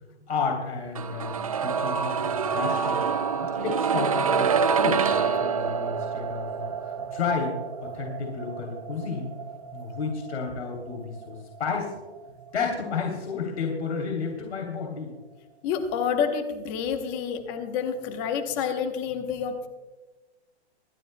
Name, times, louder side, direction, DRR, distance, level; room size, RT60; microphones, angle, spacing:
voice 1, 0.1-9.3 9.7-11.9 12.5-15.1, left 5 dB, 75° left, 0 dB, 3.2 m, -32 dB
sound 1, 0.9-12.8 13.1-13.2, right 6 dB, 35° right, 0.4 m, -28 dB
voice 2, 3.3-3.6 7.0-7.1 15.6-19.7, left 7 dB, 15° left, 7 dB, 0.9 m, -29 dB
27.5 x 12.0 x 2.2 m, 1.2 s
hypercardioid pair, 165°, 34 cm